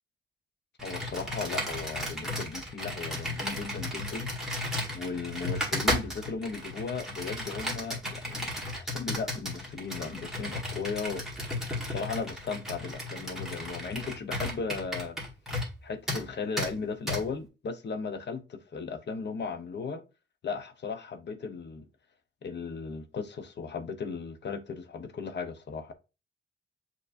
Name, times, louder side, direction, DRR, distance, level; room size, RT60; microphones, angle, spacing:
voice 1, 0.8-4.3 4.9-11.2 11.9-15.2 15.8-20.0 20.4-21.9 22.4-25.9, left 5 dB, 55° left, 0.7 m, -36 dB
Computer keyboard, 0.8-15.8 16.1-16.2 16.6-16.7 17.1-17.2, left 1 dB, ahead, 1.6 m, -34 dB
6.7 x 3.0 x 2.5 m
wide cardioid pair, 100°, 21 cm